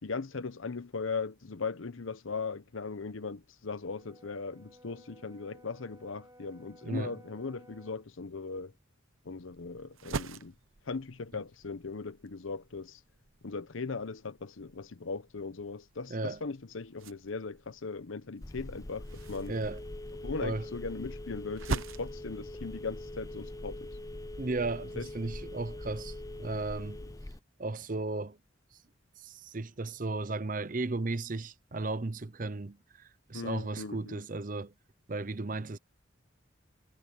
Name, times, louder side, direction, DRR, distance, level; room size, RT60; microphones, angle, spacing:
voice 1, 0.0-8.7 9.2-10.5 10.9-13.0 13.4-19.6 20.2-23.9 25.0-25.1 33.3-34.2, left 4 dB, 80° left, 0.8 m, -38 dB
Brass instrument, 3.8-8.1, equal, 20° right, 1.3 m, -57 dB
sound 1, 9.3-24.0, right 3 dB, 85° right, 0.9 m, -45 dB
Telephone, 18.4-27.4, left 1 dB, 15° left, 0.5 m, -42 dB
voice 2, 19.5-19.8 20.4-20.6 24.4-27.0 27.6-28.4 29.2-34.7 35.1-35.8, right 3 dB, 40° right, 0.7 m, -35 dB
head